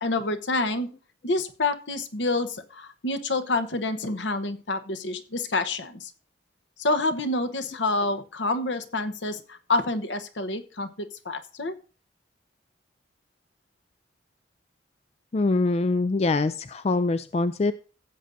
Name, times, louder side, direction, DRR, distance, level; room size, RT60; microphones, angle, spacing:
voice 1, 0.0-0.9 1.2-6.1 6.8-11.7, left 2 dB, 70° left, 8 dB, 1.0 m, -28 dB
voice 2, 15.3-17.7, left 3 dB, 35° left, 12 dB, 0.3 m, -24 dB
15.5 x 7.7 x 2.6 m, 0.38 s
head